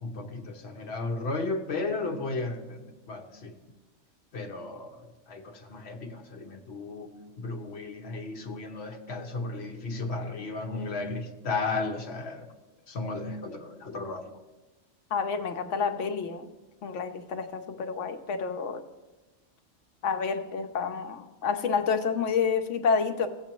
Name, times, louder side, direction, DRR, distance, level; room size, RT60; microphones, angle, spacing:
voice 1, 0.0-3.6 4.3-12.5 12.9-14.3, left 3 dB, 60° left, 1.2 m, -34 dB
voice 2, 15.1-16.5 16.8-18.8 20.0-23.3, left 5 dB, 75° left, 1.1 m, -29 dB
16.5 x 7.4 x 3.1 m
omnidirectional pair, 1.3 m